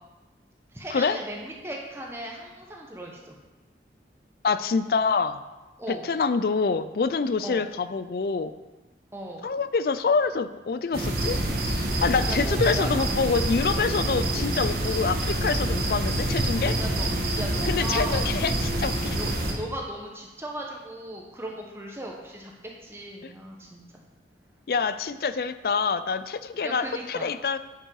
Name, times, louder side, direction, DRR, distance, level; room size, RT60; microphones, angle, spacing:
voice 1, 0.7-3.4 5.8-6.1 7.4-7.7 9.1-9.5 12.3-12.9 16.8-18.3 19.1-22.5 22.8-23.8 26.6-27.3, right 1 dB, 15° right, -1 dB, 1.0 m, -37 dB
voice 2, 4.4-5.4 5.9-8.5 9.4-11.4 12.0-16.8 17.6-19.2 23.2-23.3 24.7-27.6, left 5 dB, 55° left, 13 dB, 0.4 m, -26 dB
sound 1, 10.9-19.5, right 1 dB, 60° right, 1.4 m, -26 dB
9.9 x 5.4 x 4.7 m, 1.2 s
head